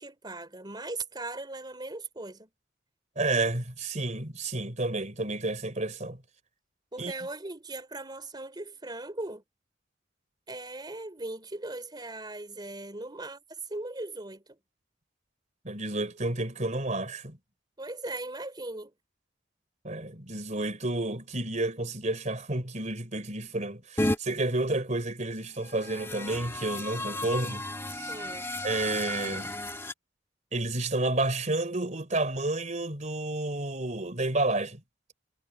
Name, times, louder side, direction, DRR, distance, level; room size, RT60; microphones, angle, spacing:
voice 1, 0.0-2.5 6.9-9.4 10.5-14.6 17.8-18.9 28.1-28.5, right 2 dB, 25° right, 3.4 m, -39 dB
voice 2, 3.2-6.2 7.0-7.1 15.6-17.4 19.8-27.7 27.9-28.1 28.6-29.5 30.5-34.8, right 2 dB, 40° right, 3.7 m, -30 dB
sound 1, 24.0-24.2 25.6-29.9, left 1 dB, 15° left, 1.5 m, -33 dB
head